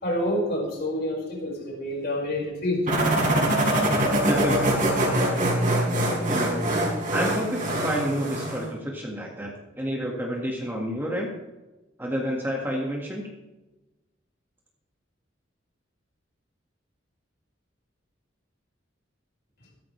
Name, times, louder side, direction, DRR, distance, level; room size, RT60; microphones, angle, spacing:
voice 1, 0.0-2.8 3.5-3.9, left 1 dB, 55° left, -3 dB, 5.3 m, -28 dB
sound 1, 2.9-8.7, right 1 dB, 45° right, 4.8 m, -23 dB
voice 2, 4.2-4.8 6.3-6.7 7.1-11.3 12.0-13.3, equal, 10° right, -2 dB, 1.8 m, -29 dB
16.0 x 13.5 x 3.3 m, 1.1 s
head